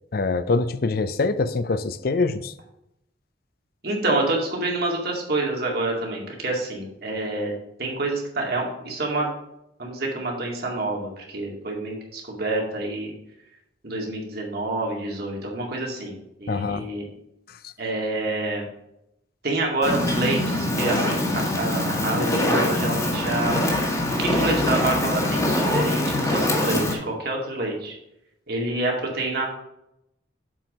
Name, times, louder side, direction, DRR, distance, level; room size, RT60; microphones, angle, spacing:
voice 1, 0.1-2.5 16.5-16.8, left 3 dB, 55° left, 0.5 m, -24 dB
voice 2, 3.8-7.5 7.8-9.3 9.8-13.1 13.8-17.1 17.8-18.7 19.4-23.6 24.2-28.0 28.5-29.5, right 2 dB, 60° right, 2.2 m, -27 dB
Fire, 19.8-26.9, left 1 dB, 20° left, 1.4 m, -23 dB
7.6 x 4.7 x 5.3 m
head